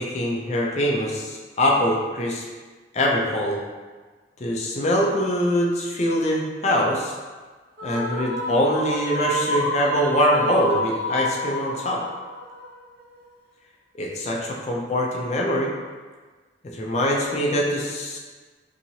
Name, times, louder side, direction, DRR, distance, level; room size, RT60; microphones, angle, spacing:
voice 1, 0.0-2.4 2.9-3.6 4.4-7.1 7.8-12.0 14.0-15.7 16.7-18.2, equal, 35° left, -2 dB, 0.4 m, -23 dB
sound 1, 7.8-13.2, equal, 55° right, 0.7 m, -28 dB
2.9 x 2.8 x 2.7 m, 1.4 s
head